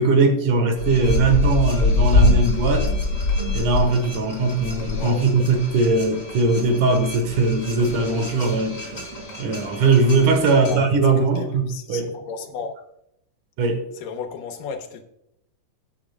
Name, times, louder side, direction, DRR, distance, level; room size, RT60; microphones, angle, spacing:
voice 1, 0.0-2.9 3.5-8.9 9.4-12.1 13.6-13.8, right 3 dB, 70° right, 2.8 m, -20 dB
sound 1, 0.8-10.8, left 2 dB, 25° left, 4.0 m, -25 dB
voice 2, 5.0-5.3 10.5-10.9 11.2-12.7 14.0-15.0, left 5 dB, 80° left, 2.9 m, -33 dB
19.0 x 8.7 x 2.4 m
omnidirectional pair, 3.8 m